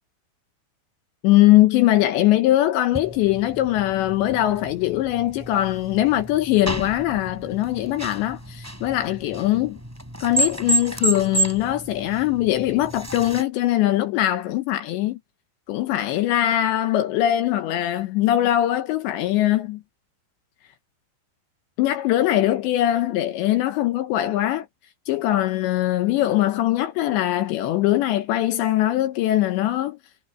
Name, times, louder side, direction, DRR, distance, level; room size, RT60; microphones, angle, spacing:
voice 1, 1.2-9.8 10.2-15.2 15.7-19.8 21.8-24.7 25.1-30.0, left 14 dB, 75° left, 2.8 m, -21 dB
sound 1, 2.9-13.4, right 2 dB, 5° right, 6.9 m, -30 dB
omnidirectional pair, 5.8 m